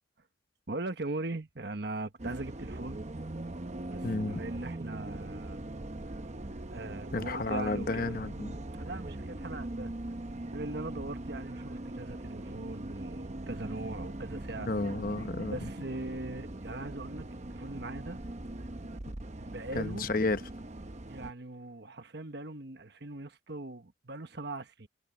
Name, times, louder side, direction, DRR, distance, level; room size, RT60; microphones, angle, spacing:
voice 1, 0.7-3.0 3.9-5.6 6.7-8.2 8.7-9.9 10.5-14.7 15.5-18.2 19.5-20.1 21.1-24.9, right 2 dB, 60° right, 1.3 m, -40 dB
Bus, 2.2-21.3, right 1 dB, 35° right, 0.9 m, -41 dB
voice 2, 4.0-4.4 7.1-8.5 14.6-15.7 19.8-20.4, left 2 dB, 45° left, 0.9 m, -32 dB
head